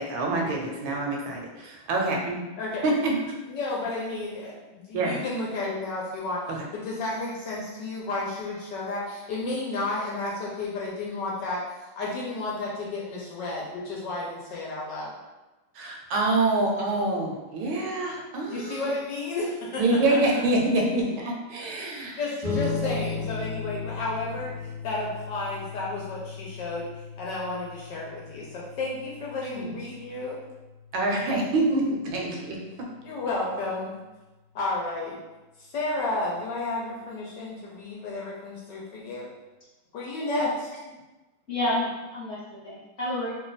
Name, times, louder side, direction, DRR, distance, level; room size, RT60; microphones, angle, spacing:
voice 1, 0.0-2.4 2.8-3.3 4.9-5.2 6.5-6.6 15.7-18.9 19.8-22.2 22.8-23.0 29.5-29.7 30.9-32.6, right 2 dB, 75° right, 0 dB, 1.3 m, -26 dB
voice 2, 0.7-1.0 2.6-2.9 3.5-6.4 6.7-15.1 18.5-19.8 20.1-20.4 22.2-26.9 27.2-30.4 33.0-34.0 34.5-35.2 35.6-39.3 39.9-40.5, left 2 dB, 70° left, -4 dB, 1.2 m, -32 dB
sound 1, 22.4-33.2, left 4 dB, 55° right, 0.4 m, -37 dB
voice 3, 41.5-43.3, left 1 dB, 45° left, -9 dB, 1.1 m, -29 dB
3.2 x 2.4 x 3.9 m, 1.1 s
omnidirectional pair, 2.3 m